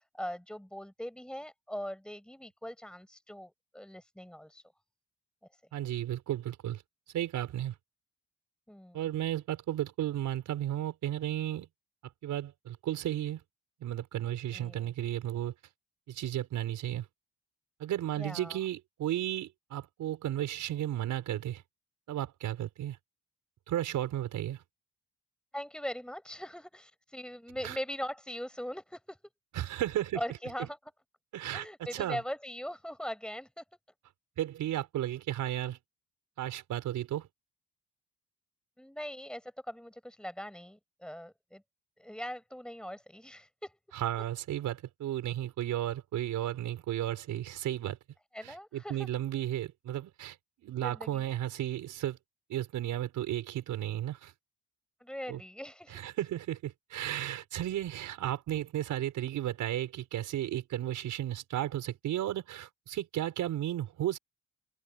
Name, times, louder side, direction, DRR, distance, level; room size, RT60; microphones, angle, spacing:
voice 1, 0.0-4.6 8.7-9.0 14.5-14.9 18.2-18.6 25.5-29.2 30.2-30.8 31.5-33.6 38.8-41.6 42.0-43.8 48.3-49.1 50.8-51.2 55.0-56.1, equal, 5° left, 6.9 m, -41 dB
voice 2, 5.7-6.8 7.1-7.8 8.9-11.7 12.2-13.4 13.8-15.5 16.1-17.1 17.8-21.6 22.1-23.0 23.7-24.6 27.6-27.8 29.5-30.2 31.3-31.7 31.9-32.2 34.4-35.8 36.4-37.3 43.9-48.0 48.4-52.2 52.5-54.3 55.3-55.4 55.9-64.2, right 12 dB, 80° right, 5.6 m, -34 dB
cardioid pair, 90°, 30 cm